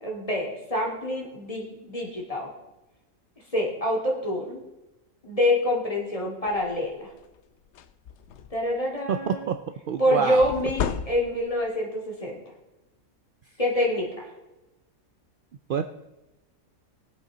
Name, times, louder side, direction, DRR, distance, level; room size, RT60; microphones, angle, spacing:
voice 1, 0.0-2.5 3.5-4.6 5.2-7.1 8.5-9.5 10.0-12.4 13.6-14.3, left 1 dB, 25° left, -2 dB, 2.5 m, -26 dB
sound 1, 6.5-6.8 7.2-7.4 7.6-8.7 10.4-11.6, left 8 dB, 65° left, 0.8 m, -33 dB
voice 2, 9.1-9.6 9.9-10.5 15.7-15.8, right 7 dB, 75° right, 9 dB, 0.5 m, -26 dB
20.0 x 7.9 x 3.9 m, 1.0 s
omnidirectional pair, 1.5 m